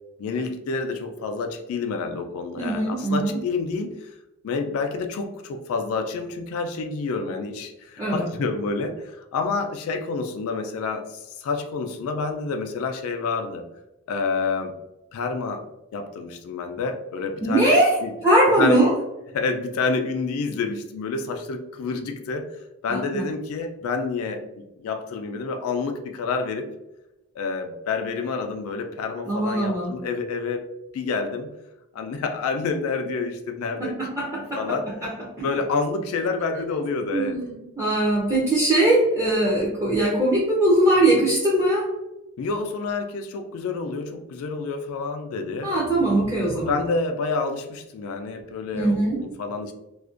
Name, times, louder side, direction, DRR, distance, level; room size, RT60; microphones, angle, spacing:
voice 1, 0.2-4.1 4.4-13.6 14.1-14.7 15.1-15.6 15.9-18.1 18.6-18.9 19.3-22.5 22.8-26.7 27.4-30.6 30.9-31.5 31.9-34.0 34.3-34.8 35.4-37.4 42.4-45.7 46.5-49.7, left 4 dB, 85° left, 5 dB, 0.3 m, -28 dB
voice 2, 2.6-3.4 8.0-8.3 17.4-18.9 22.9-23.2 29.3-29.9 33.8-34.6 35.0-35.5 37.1-41.9 45.6-46.8 48.7-49.2, right 1 dB, 15° right, -6 dB, 0.4 m, -21 dB
2.4 x 2.1 x 2.4 m, 0.95 s
head